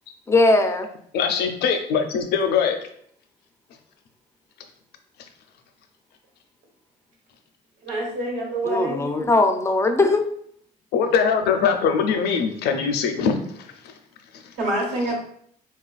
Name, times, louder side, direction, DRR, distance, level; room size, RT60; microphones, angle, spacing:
voice 1, 0.3-0.9 8.6-10.2, left 2 dB, 15° left, 6 dB, 0.3 m, -19 dB
voice 2, 1.1-2.8 10.9-13.7 14.3-14.4, left 6 dB, 75° left, 6 dB, 0.5 m, -22 dB
voice 3, 7.8-9.0 14.6-15.1, right 1 dB, 85° right, -3 dB, 1.3 m, -26 dB
3.6 x 2.3 x 2.4 m, 0.66 s
cardioid pair, 110°, 17 cm